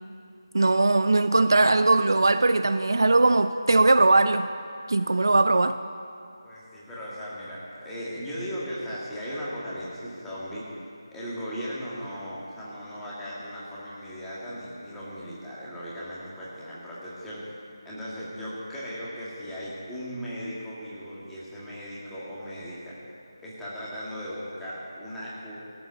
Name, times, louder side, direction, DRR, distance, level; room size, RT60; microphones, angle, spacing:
voice 1, 0.5-4.5 4.9-5.8, right 2 dB, 55° right, 11 dB, 0.4 m, -20 dB
voice 2, 6.4-10.6 11.1-17.6 17.9-23.0 23.4-25.6, equal, 5° left, -9 dB, 1.9 m, -37 dB
17.5 x 8.2 x 6.8 m, 2.5 s
figure-of-eight pair, 160°, 2 cm